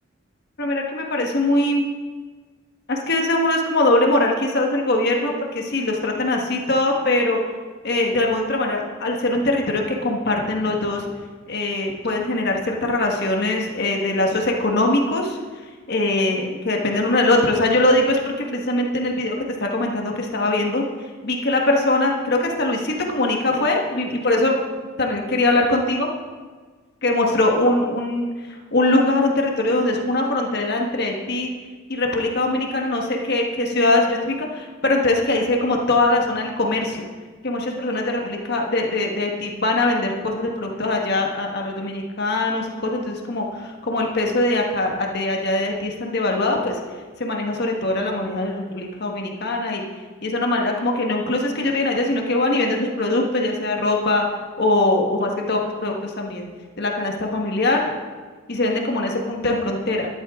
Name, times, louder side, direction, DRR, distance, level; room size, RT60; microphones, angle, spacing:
voice 1, 0.6-1.8 2.9-7.4 7.8-11.0 11.5-15.4 15.9-20.8 21.2-24.6 25.0-26.1 27.0-28.3 28.7-31.5 31.9-37.0 37.4-46.8 47.2-49.8 50.2-54.2 54.6-56.5 56.8-57.8 58.5-60.1, left 2 dB, 50° left, 1 dB, 1.5 m, -22 dB
13.5 x 11.5 x 3.7 m, 1.4 s
head